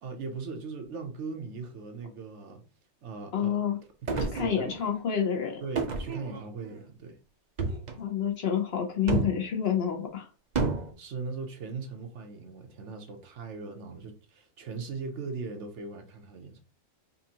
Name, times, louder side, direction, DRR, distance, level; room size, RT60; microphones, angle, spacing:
voice 1, 0.0-2.6 3.0-3.6 4.1-4.7 5.6-7.2 11.0-16.6, right 4 dB, 70° right, 1.1 m, -39 dB
voice 2, 3.3-3.8 4.3-5.6 8.0-10.3, left 8 dB, 60° left, 1.0 m, -28 dB
sound 1, 4.1-5.0 5.7-6.7 7.6-8.0 9.1-9.5 10.5-10.9, right 4 dB, 45° right, 0.6 m, -30 dB
5.3 x 2.5 x 2.8 m
omnidirectional pair, 1.3 m